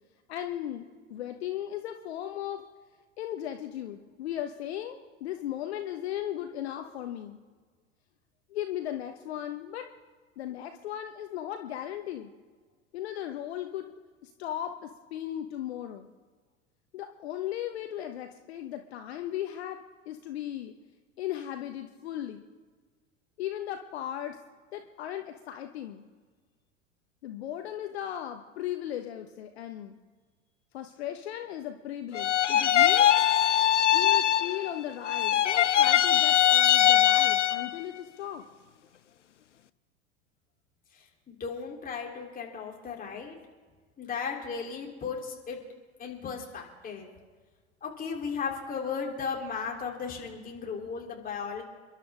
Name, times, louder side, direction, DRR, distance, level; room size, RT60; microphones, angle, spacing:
voice 1, 0.3-2.6 3.2-7.4 8.5-9.9 10.4-12.3 12.9-13.9 14.2-16.1 16.9-20.7 21.2-22.4 23.4-24.4 24.7-26.1 27.2-30.0 30.7-33.1 33.9-38.4, left 11 dB, 60° left, 6 dB, 1.1 m, -37 dB
sound 1, 32.1-34.8 35.0-37.8, left 11 dB, 75° left, 0.6 m, -22 dB
voice 2, 41.3-43.4 44.0-45.6 46.0-47.1 47.8-51.6, left 6 dB, 25° left, -1 dB, 3.7 m, -35 dB
29.5 x 12.0 x 3.7 m, 1.5 s
figure-of-eight pair, 80°, 36 cm